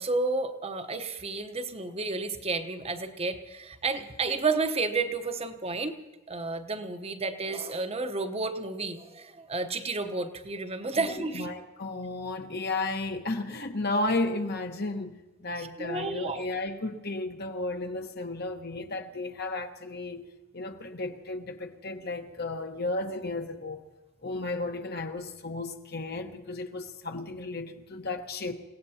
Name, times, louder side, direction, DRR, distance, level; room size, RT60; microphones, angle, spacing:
voice 1, 0.0-6.0 6.3-11.5 15.6-16.4, right 3 dB, 30° right, 0.9 m, -31 dB
voice 2, 10.9-15.1 15.4-20.2 20.5-23.9 24.2-28.5, left 2 dB, 50° left, 1.2 m, -33 dB
29.0 x 17.5 x 2.8 m
head